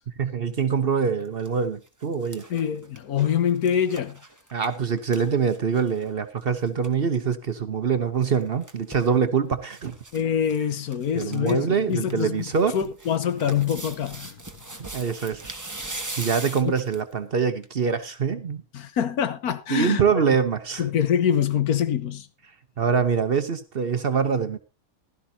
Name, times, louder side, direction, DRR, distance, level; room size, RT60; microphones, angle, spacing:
voice 1, 0.2-2.4 4.5-9.9 11.1-12.7 14.9-15.4 16.2-18.6 19.7-20.8 22.8-24.6, right 6 dB, 45° right, 0.9 m, -24 dB
sound 1, 1.2-1.5 1.9-6.1 6.4-6.5 6.7-6.9 8.2-9.1 9.7-10.2 10.5-10.6 10.9-11.5 11.9-17.1 17.6-17.7, right 2 dB, 15° right, 1.1 m, -40 dB
voice 2, 2.5-4.2 10.1-12.5 12.7-14.4 16.6-16.7 18.7-20.4 20.8-22.3, left 8 dB, 80° left, 1.5 m, -25 dB
16.0 x 12.5 x 2.7 m
omnidirectional pair, 1.5 m